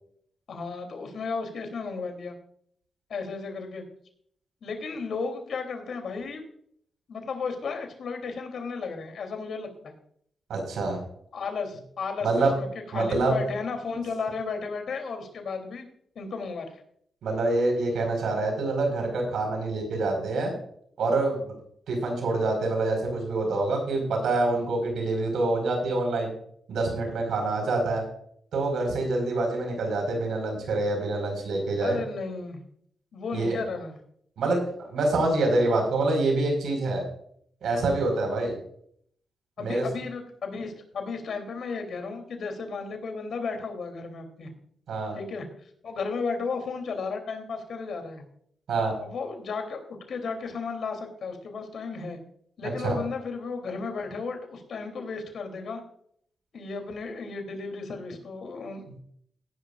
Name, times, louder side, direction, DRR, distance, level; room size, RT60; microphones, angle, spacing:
voice 1, 0.5-2.4 3.1-3.8 4.6-6.4 7.1-9.9 11.3-12.7 12.9-15.8 16.1-16.8 31.8-32.6 33.1-33.9 39.6-44.5 45.1-45.4 45.8-48.2 49.0-49.8 50.1-52.2 52.6-55.8 56.5-59.0, left 4 dB, 70° left, 4 dB, 3.2 m, -34 dB
voice 2, 10.5-11.0 12.2-12.5 12.9-13.4 17.2-20.5 21.0-21.5 21.9-26.3 26.7-28.0 28.5-32.0 33.3-33.6 34.4-34.6 34.9-37.0 37.6-38.5 39.6-39.9 44.9-45.2 48.7-48.9 52.6-53.0, right 2 dB, 85° right, 2 dB, 4.9 m, -26 dB
16.5 x 11.0 x 2.5 m, 0.65 s
cardioid pair, 85°, 0 cm